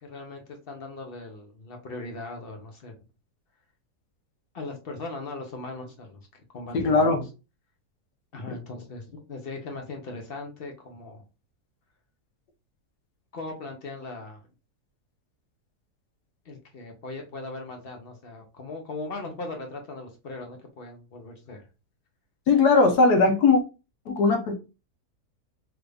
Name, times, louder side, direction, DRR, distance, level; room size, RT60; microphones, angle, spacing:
voice 1, 0.0-3.0 4.5-6.2 6.5-7.1 8.3-11.2 13.3-14.4 16.4-21.6, left 3 dB, 50° left, 0.8 m, -39 dB
voice 2, 6.7-7.2 22.5-23.6 24.1-24.5, left 3 dB, 85° left, 1.3 m, -19 dB
3.3 x 2.5 x 3.3 m
omnidirectional pair, 1.7 m